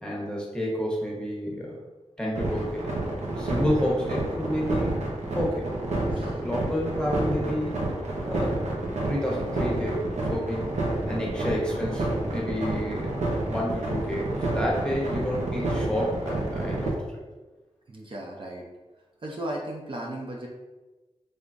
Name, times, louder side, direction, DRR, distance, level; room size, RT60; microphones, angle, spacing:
voice 1, 0.0-1.8 2.2-2.9 3.3-5.0 5.3-5.6 6.4-7.7 8.2-10.7 11.1-17.2, equal, 5° left, -3 dB, 1.1 m, -30 dB
sound 1, 2.4-16.9, right 2 dB, 85° right, 0.8 m, -29 dB
voice 2, 17.9-18.7 19.2-20.5, right 1 dB, 45° right, -1 dB, 0.6 m, -36 dB
3.6 x 3.4 x 2.6 m, 1.2 s
wide cardioid pair, 70°, 12 cm